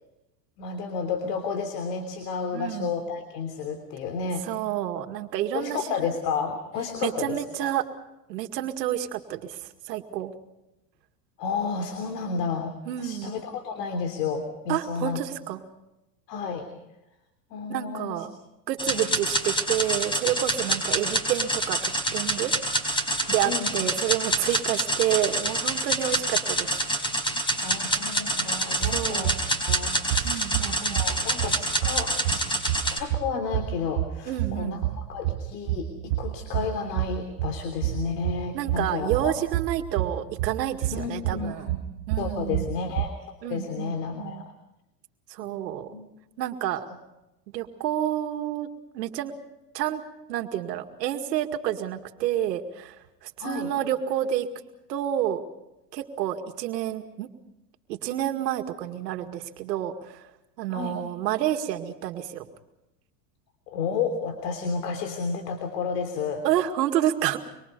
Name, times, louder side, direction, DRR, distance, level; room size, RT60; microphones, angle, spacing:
voice 1, 0.6-4.4 5.5-7.7 11.4-15.2 16.3-16.7 17.5-18.3 18.9-19.2 23.4-23.9 27.6-29.3 29.6-39.4 40.9-41.8 42.2-43.1 43.4-44.4 45.4-46.1 46.9-47.0 53.4-53.7 60.7-61.0 63.7-66.5, left 5 dB, 75° left, 6 dB, 3.4 m, -32 dB
voice 2, 2.5-2.9 4.4-5.8 7.0-7.8 8.3-9.6 9.9-10.3 12.9-13.3 14.7-15.6 17.7-18.4 18.7-22.5 23.3-26.7 28.8-29.3 30.2-31.0 34.3-34.8 38.5-41.7 42.1-42.6 43.4-44.4 45.3-45.9 46.4-46.9 47.5-48.7 48.9-49.3 49.7-50.0 50.3-53.0 53.2-54.5 54.9-55.4 55.9-57.3 57.9-60.2 60.6-62.5 66.4-67.4, right 12 dB, 85° right, 6 dB, 2.2 m, -29 dB
sound 1, 18.8-33.0, right 1 dB, 10° left, 4.3 m, -27 dB
sound 2, 28.8-43.1, right 15 dB, 60° right, 0.9 m, -30 dB
25.0 x 24.5 x 5.4 m, 0.92 s
supercardioid pair, 130°, 49 cm